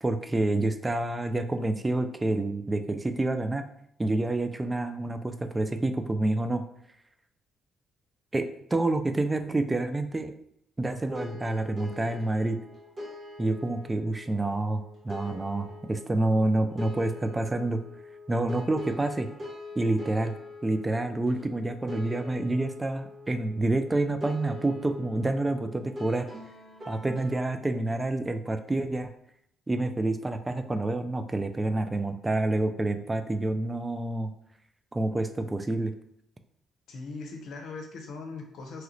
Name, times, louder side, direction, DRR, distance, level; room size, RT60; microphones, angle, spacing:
voice 1, 0.0-3.7 4.0-6.6 8.3-10.3 10.8-12.6 13.4-17.8 18.3-19.3 19.8-20.3 20.6-26.3 26.9-29.1 29.7-34.3 34.9-35.9, right 2 dB, 20° right, 9 dB, 0.4 m, -28 dB
sound 1, 11.1-27.6, left 2 dB, 40° right, 0.8 m, -44 dB
voice 2, 36.9-38.8, left 3 dB, 70° left, 3 dB, 0.6 m, -40 dB
3.0 x 2.4 x 3.0 m, 0.73 s
supercardioid pair, 65°, 0 cm